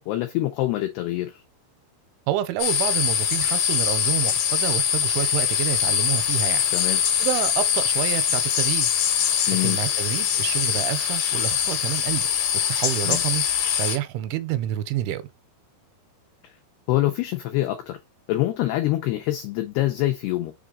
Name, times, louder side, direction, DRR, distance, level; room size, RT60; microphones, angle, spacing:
voice 1, 0.0-1.4 6.7-7.0 9.5-9.8 13.0-13.2 16.9-18.0 18.3-20.5, left 15 dB, 85° left, 2.3 m, -25 dB
voice 2, 2.3-6.6 7.2-8.9 9.6-12.3 12.7-13.4 13.8-15.2, right 13 dB, 85° right, 3.0 m, -28 dB
sound 1, 2.6-14.0, left 8 dB, 70° left, 2.2 m, -23 dB
6.6 x 4.0 x 3.7 m
omnidirectional pair, 5.6 m